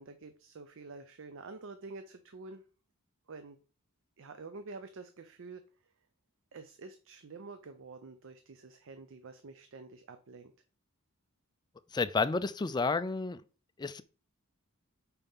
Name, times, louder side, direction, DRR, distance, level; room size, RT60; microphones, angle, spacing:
voice 1, 0.0-2.6 3.3-3.6 4.2-5.6 6.5-10.5, right 3 dB, 60° right, 0.5 m, -48 dB
voice 2, 11.9-13.4 13.8-14.0, left 4 dB, 20° left, 0.3 m, -30 dB
5.3 x 4.4 x 5.4 m
head